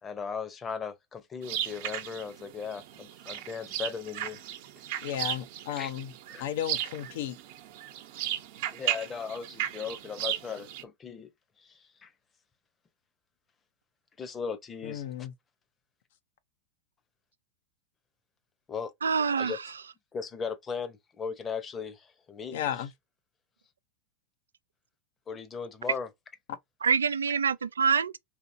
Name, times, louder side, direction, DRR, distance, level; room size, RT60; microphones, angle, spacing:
voice 1, 0.0-4.4 5.8-5.9 6.3-6.4 8.7-11.3 11.6-12.1 14.2-15.0 18.7-18.9 19.4-19.6 20.1-22.8 25.3-26.1, left 6 dB, 25° left, 0.8 m, -37 dB
sound 1, 1.4-10.8, right 12 dB, 60° right, 0.9 m, -36 dB
voice 2, 5.0-6.1 6.4-7.4 14.8-15.3 22.5-22.9 26.5-26.6, left 10 dB, 65° left, 0.6 m, -34 dB
voice 3, 19.0-19.6 26.8-28.2, right 6 dB, 90° right, 0.3 m, -26 dB
4.2 x 2.8 x 2.7 m
hypercardioid pair, 100°, 0 cm